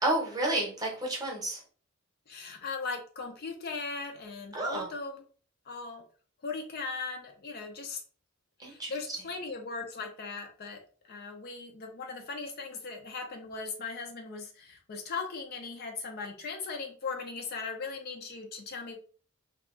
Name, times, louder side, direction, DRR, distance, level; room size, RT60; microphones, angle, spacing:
voice 1, 0.0-1.6 4.5-4.9 8.6-8.9, right 2 dB, 15° right, -1 dB, 0.9 m, -30 dB
voice 2, 2.3-5.2 5.7-6.0 6.4-8.0 8.6-10.8 11.0-19.0, left 4 dB, 45° left, 3 dB, 0.5 m, -38 dB
2.7 x 2.3 x 3.7 m, 0.42 s
head